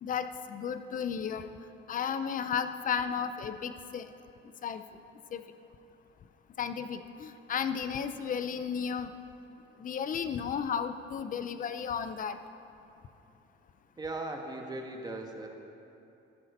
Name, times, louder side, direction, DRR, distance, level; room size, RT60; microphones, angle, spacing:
voice 1, 0.0-1.5 1.9-4.1 4.6-4.8 5.3-5.4 6.6-9.1 9.8-12.4, left 7 dB, 40° left, 11 dB, 0.6 m, -33 dB
voice 2, 14.0-15.5, right 2 dB, 20° right, 2 dB, 1.4 m, -38 dB
14.0 x 11.0 x 4.3 m, 2.8 s
cardioid pair, 120°, 21 cm